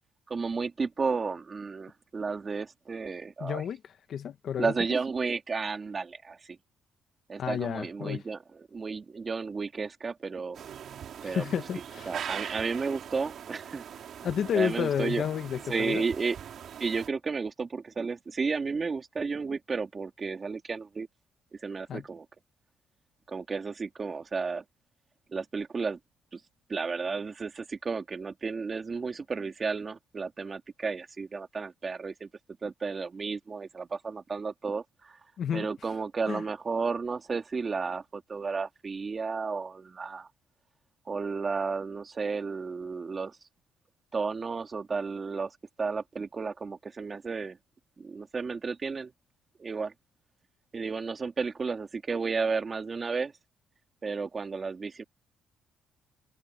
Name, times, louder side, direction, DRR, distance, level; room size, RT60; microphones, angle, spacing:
voice 1, 0.3-3.6 4.6-6.6 7.3-10.6 11.2-11.5 12.1-13.8 14.5-15.3 15.7-16.4 16.8-21.1 21.6-22.3 23.3-24.6 25.3-26.0 26.3-26.4 26.7-32.3 32.6-35.2 35.5-40.3 41.1-43.4 44.1-47.6 48.0-49.1 49.6-49.9 50.7-53.3 54.0-55.0, right 4 dB, 30° right, 2.7 m, -33 dB
voice 2, 3.4-3.8 4.1-4.7 7.4-8.2 11.2-12.2 14.2-16.0 21.9-22.0 35.4-35.7 36.3-36.4, left 8 dB, 55° left, 1.5 m, -31 dB
sound 1, 10.5-17.1, right 9 dB, 55° right, 3.7 m, -41 dB
cardioid pair, 115°, 0 cm